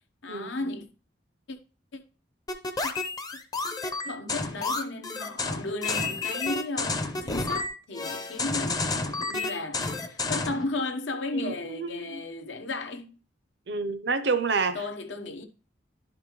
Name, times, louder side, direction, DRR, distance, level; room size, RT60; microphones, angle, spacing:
voice 1, 0.2-0.9 1.5-1.6 1.9-2.0 2.8-2.9 4.0-13.2 14.7-15.4, left 2 dB, 75° left, 1.0 m, -34 dB
sound 1, 2.5-10.6, left 3 dB, 20° left, 0.6 m, -30 dB
voice 2, 11.3-12.2 13.7-14.8, right 4 dB, 60° right, 0.6 m, -29 dB
11.5 x 5.2 x 3.1 m
head